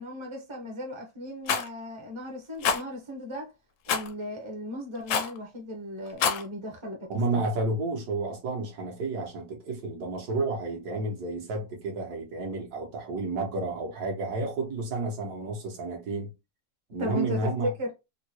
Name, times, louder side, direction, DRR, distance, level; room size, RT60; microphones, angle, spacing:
voice 1, 0.0-3.5 3.9-7.5 17.0-17.9, left 1 dB, 35° right, 0.4 m, -36 dB
Rattle, 1.5-1.7 2.6-2.8 3.9-4.1 5.1-5.4 6.1-6.4, left 6 dB, 70° left, 0.8 m, -26 dB
voice 2, 7.1-16.3 16.9-17.7, right 3 dB, 75° right, 1.4 m, -31 dB
3.7 x 2.1 x 2.9 m
omnidirectional pair, 1.7 m